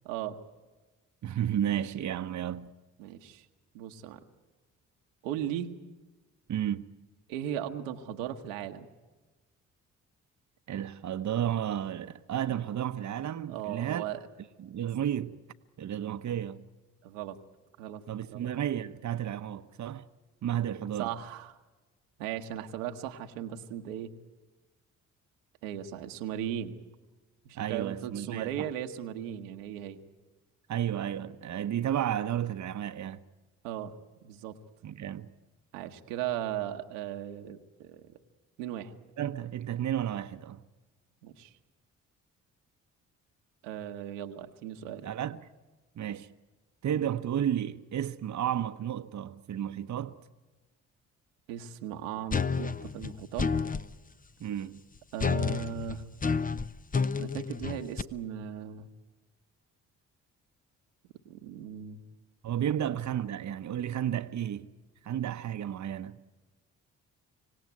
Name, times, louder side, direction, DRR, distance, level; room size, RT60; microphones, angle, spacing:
voice 1, 0.0-0.4 3.0-3.5 3.7-4.2 5.2-5.7 7.3-8.9 13.5-14.2 17.0-17.4 17.8-18.0 18.3-18.5 21.0-21.6 22.2-24.1 25.6-26.8 27.4-30.0 33.6-33.9 34.2-34.6 35.7-38.2 38.6-38.9 41.2-41.5 43.6-45.0 51.5-53.5 55.1-56.0 57.2-58.9 61.2-62.0 62.6-62.7, right 10 dB, 90° right, 1.2 m, -37 dB
voice 2, 1.2-2.7 6.5-6.8 10.7-14.0 14.6-15.4 15.8-16.6 18.1-20.1 20.4-21.1 27.5-28.7 30.7-33.2 34.8-35.3 39.2-40.6 45.0-45.4 46.0-46.3 46.8-50.2 54.4-54.8 62.4-64.7 65.0-66.2, right 10 dB, 50° right, 0.9 m, -32 dB
sound 1, 52.3-53.9 55.2-58.0, left 5 dB, 25° left, 0.8 m, -30 dB
25.5 x 17.0 x 9.5 m
hypercardioid pair, 45°, 36 cm